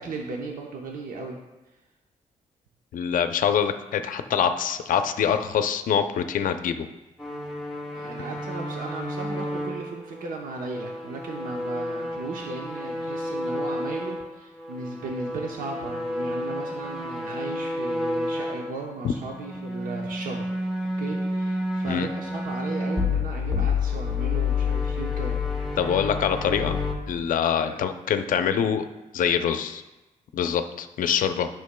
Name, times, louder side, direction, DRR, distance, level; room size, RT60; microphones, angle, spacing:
voice 1, 0.0-1.4 1.7-1.8 7.9-20.5 21.0-25.4 27.6-27.8, right 3 dB, 85° right, 0 dB, 0.8 m, -36 dB
voice 2, 2.9-6.9 21.9-22.1 25.8-28.8 29.1-29.8 30.3-31.5, left 8 dB, 80° left, 9 dB, 0.5 m, -25 dB
sound 1, 7.2-14.3 14.6-18.7 19.3-26.9, left 3 dB, ahead, 1.1 m, -30 dB
11.0 x 6.2 x 2.2 m, 1.0 s
wide cardioid pair, 160°, 14 cm